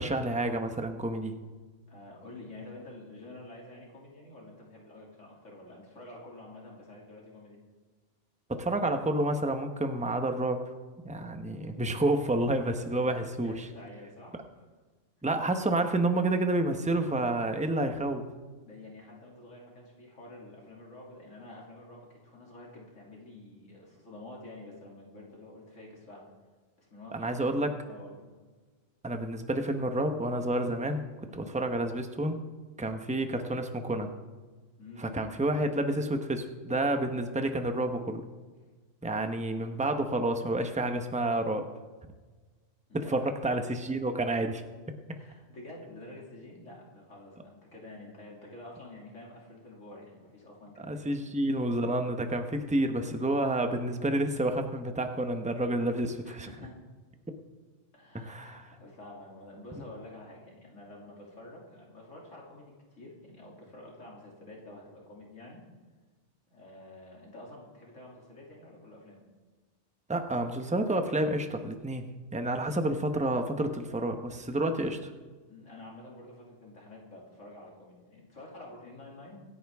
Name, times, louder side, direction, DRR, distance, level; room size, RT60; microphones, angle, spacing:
voice 1, 0.0-1.4 8.5-10.6 11.0-13.6 15.2-18.2 27.1-27.7 29.0-31.1 31.3-32.4 32.8-34.1 35.0-38.2 39.0-41.7 42.9-44.6 50.9-56.5 58.1-58.6 70.1-72.0 72.3-75.1, right 1 dB, 5° right, 6 dB, 0.8 m, -29 dB
voice 2, 1.9-7.6 12.9-14.6 18.6-26.3 26.8-28.4 31.3-31.5 34.8-35.3 42.9-43.4 45.1-51.1 56.2-56.8 57.9-65.6 66.5-69.2 75.5-79.4, left 2 dB, 80° left, -3 dB, 3.1 m, -49 dB
26.0 x 9.7 x 3.6 m, 1.4 s
omnidirectional pair, 1.3 m